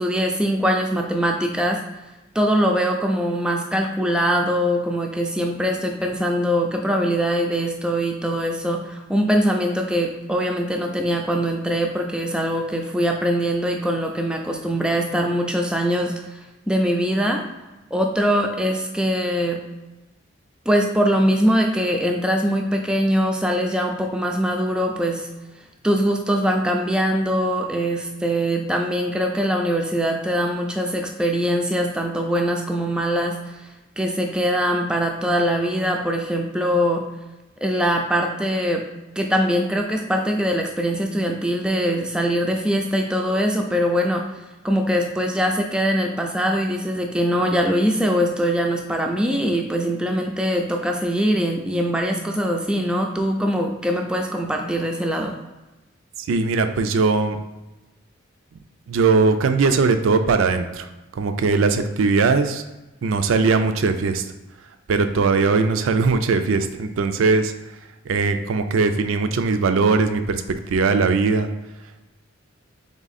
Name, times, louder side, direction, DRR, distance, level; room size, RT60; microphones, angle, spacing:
voice 1, 0.0-1.8 2.3-16.4 16.7-17.4 17.9-19.6 20.7-25.3 25.8-33.4 34.0-37.0 37.6-38.8 39.2-44.2 44.6-55.3, equal, 5° right, 2 dB, 0.3 m, -22 dB
voice 2, 56.3-57.4 58.9-60.9 61.1-62.6 63.0-64.2 64.9-67.5 68.1-71.5, right 4 dB, 80° right, 8 dB, 0.4 m, -20 dB
3.6 x 3.3 x 4.1 m, 1.1 s
head